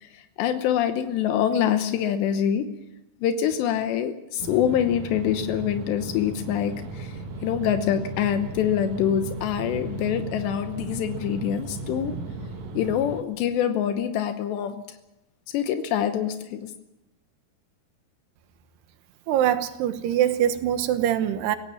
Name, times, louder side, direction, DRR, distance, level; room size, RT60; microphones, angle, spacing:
voice 1, 0.0-2.6 3.2-7.1 7.4-12.2 12.7-14.8 15.5-16.7, left 9 dB, 85° left, 3.3 m, -25 dB
sound 1, 4.4-13.2, right 3 dB, 55° right, 2.4 m, -36 dB
voice 2, 19.3-21.6, right 11 dB, 75° right, 3.2 m, -23 dB
24.0 x 17.5 x 7.2 m
omnidirectional pair, 4.8 m